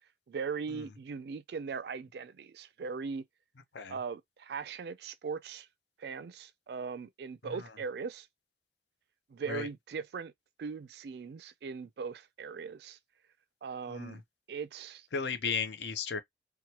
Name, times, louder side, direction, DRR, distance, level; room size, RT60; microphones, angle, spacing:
voice 1, 0.3-3.2 3.9-5.7 6.0-8.3 9.3-10.3 10.6-13.0 13.6-14.2 14.5-15.1, right 5 dB, 60° right, 0.3 m, -39 dB
voice 2, 13.9-14.2 15.1-16.2, left 5 dB, 70° left, 0.5 m, -35 dB
2.9 x 2.1 x 2.8 m
head